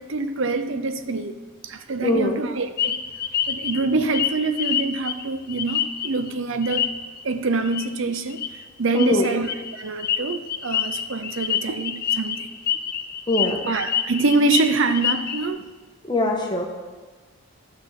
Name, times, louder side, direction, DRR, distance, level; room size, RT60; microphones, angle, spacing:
voice 1, 0.0-1.3 1.6-3.0 3.5-6.9 7.2-8.4 8.8-12.4 13.7-15.6, right 3 dB, 60° right, 0.6 m, -25 dB
voice 2, 2.0-2.4 8.9-9.3 13.3-13.6 16.1-16.6, left 2 dB, 20° left, 1.3 m, -22 dB
sound 1, 2.8-6.3 6.6-7.2 7.7-7.9 8.2-8.5 9.0-15.5, left 9 dB, 45° left, 0.5 m, -26 dB
12.0 x 6.4 x 5.8 m
head